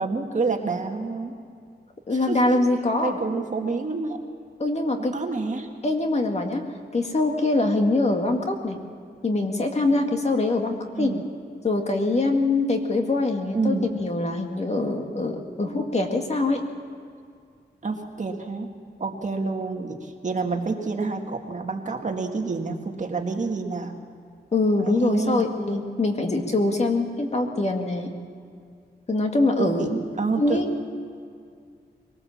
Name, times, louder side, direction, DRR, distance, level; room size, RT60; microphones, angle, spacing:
voice 1, 0.0-1.4 2.3-2.6 3.0-4.2 5.1-5.7 10.9-11.3 13.5-13.9 15.6-15.8 17.8-18.7 19.0-23.9 24.8-25.5 29.6-30.6, right 4 dB, 45° right, 3 dB, 1.9 m, -28 dB
voice 2, 2.1-3.2 4.6-5.1 5.8-6.6 6.9-8.8 9.2-11.1 11.6-16.6 24.5-28.1 29.1-29.9 30.4-30.7, left 2 dB, 40° left, 3 dB, 2.0 m, -23 dB
22.0 x 18.5 x 7.3 m, 2.3 s
wide cardioid pair, 135°, 18 cm